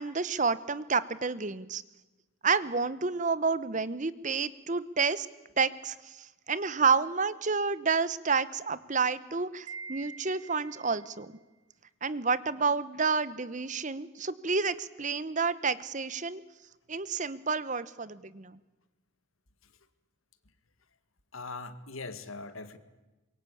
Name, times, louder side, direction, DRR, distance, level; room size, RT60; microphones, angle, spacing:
voice 1, 0.0-1.8 2.4-5.3 5.6-11.4 12.0-16.4 16.9-18.6, right 5 dB, 35° right, 16 dB, 0.9 m, -29 dB
Wind chime, 9.7-11.1, right 4 dB, 85° right, 1.7 m, -44 dB
voice 2, 21.3-22.8, left 3 dB, 80° left, 11 dB, 2.0 m, -41 dB
25.5 x 22.5 x 8.6 m, 1.1 s
head